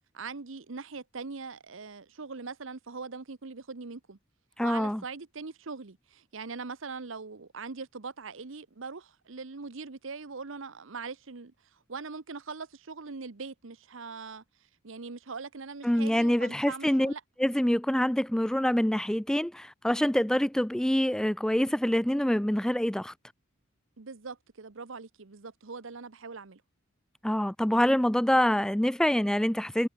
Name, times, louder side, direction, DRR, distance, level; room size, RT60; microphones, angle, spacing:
voice 1, 0.1-4.2 4.6-14.4 14.8-17.2 24.0-26.6, right 4 dB, 70° right, 1.0 m, -41 dB
voice 2, 4.6-5.0 15.8-17.1 17.4-23.1 27.2-29.9, equal, 5° left, 0.3 m, -26 dB
head